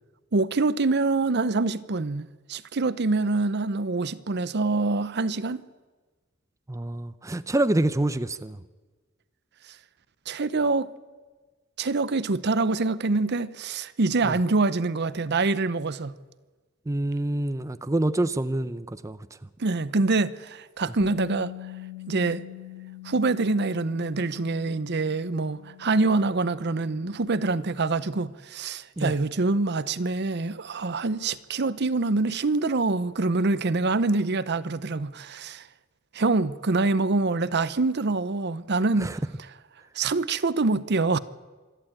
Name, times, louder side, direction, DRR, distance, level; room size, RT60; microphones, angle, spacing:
voice 1, 0.3-5.6 10.3-10.9 11.8-16.2 19.6-21.5 22.1-22.4 23.0-35.6 36.1-39.2 39.9-41.2, right 3 dB, 55° right, 0.7 m, -25 dB
voice 2, 6.7-8.6 14.2-14.4 16.9-19.2 29.0-29.1 39.0-39.2, right 1 dB, 15° right, 0.5 m, -26 dB
Bass guitar, 21.0-27.3, left 11 dB, 20° left, 4.2 m, -43 dB
26.0 x 11.5 x 8.8 m
head